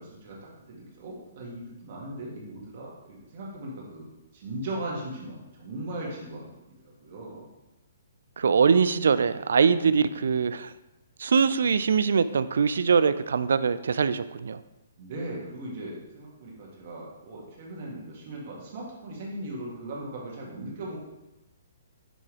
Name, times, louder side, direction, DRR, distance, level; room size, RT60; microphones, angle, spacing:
voice 1, 0.0-4.1 4.3-7.5 9.9-10.1 15.0-21.0, right 1 dB, 50° right, -3 dB, 2.1 m, -38 dB
voice 2, 8.4-10.7 11.2-14.6, right 6 dB, 75° right, 15 dB, 0.3 m, -23 dB
9.8 x 3.6 x 3.4 m, 1.0 s
hypercardioid pair, 145°, 0 cm